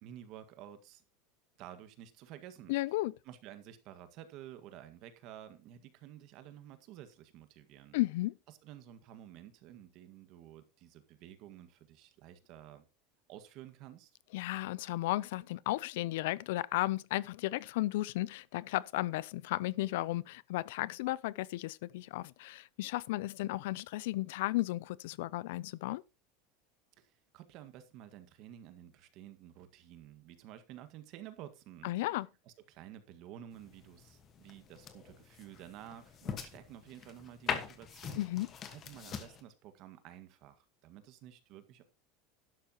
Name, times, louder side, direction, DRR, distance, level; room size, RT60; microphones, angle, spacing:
voice 1, 0.0-1.0 1.6-2.7 3.2-8.0 8.6-12.9 13.3-14.1 27.0-32.1 32.5-38.2 38.7-41.8, right 11 dB, 45° right, 1.7 m, -52 dB
voice 2, 2.7-3.1 7.9-8.3 14.3-26.0 31.8-32.3 38.2-38.5, left 17 dB, 75° left, 0.5 m, -34 dB
sound 1, 33.5-39.4, left 7 dB, 25° left, 1.4 m, -43 dB
12.5 x 11.5 x 2.9 m
supercardioid pair, 165°, 0 cm